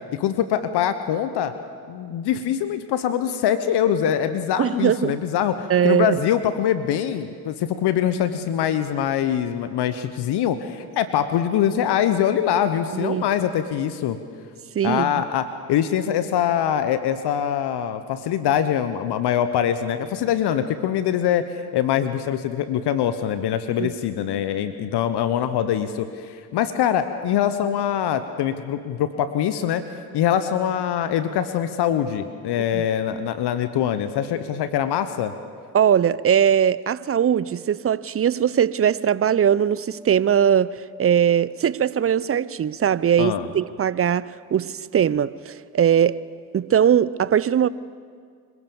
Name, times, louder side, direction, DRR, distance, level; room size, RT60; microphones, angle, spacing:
voice 1, 0.1-1.5 1.9-14.2 14.8-21.4 21.7-29.8 30.1-35.3 43.2-43.5, left 9 dB, 60° left, 1.2 m, -23 dB
voice 2, 4.6-5.2 5.7-6.2 12.9-13.2 14.7-15.1 23.8-23.9 32.7-32.8 35.7-46.2 46.5-47.7, right 9 dB, 30° right, 0.7 m, -20 dB
25.5 x 16.0 x 7.2 m
hypercardioid pair, 50°, 45 cm